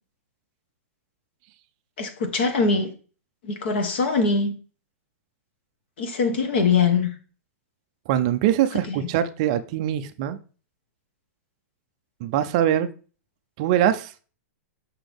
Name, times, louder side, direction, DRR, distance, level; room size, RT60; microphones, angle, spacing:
voice 1, 2.0-2.9 3.4-4.6 6.0-7.1 8.9-9.0, left 4 dB, 45° left, 1.1 m, -22 dB
voice 2, 8.1-10.4 12.2-12.9 13.6-14.1, right 11 dB, 25° right, 0.4 m, -22 dB
6.1 x 5.8 x 3.4 m
hypercardioid pair, 180°, 8 cm